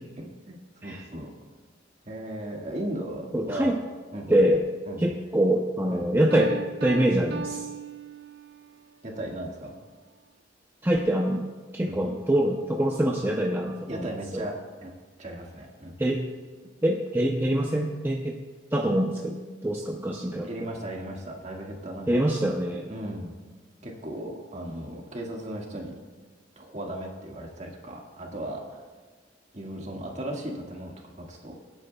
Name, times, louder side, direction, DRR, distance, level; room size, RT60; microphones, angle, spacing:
voice 1, 0.2-1.3 2.0-3.7 4.1-4.4 4.9-5.1 5.9-6.1 9.0-9.7 11.8-12.0 13.9-14.6 14.8-14.9 15.2-15.9 20.4-22.2 22.9-23.3 23.8-26.0 26.5-28.8 29.5-31.5, right 1 dB, 40° right, -1 dB, 1.8 m, -36 dB
voice 2, 3.3-3.7 4.3-4.6 5.0-7.7 10.8-11.5 11.7-14.5 16.0-16.2 16.8-18.4 18.7-20.7 22.1-22.9, right 1 dB, 10° right, 0 dB, 0.6 m, -25 dB
Piano, 6.3-8.8, right 5 dB, 60° right, 0.8 m, -37 dB
25.0 x 9.0 x 2.3 m, 1.3 s
head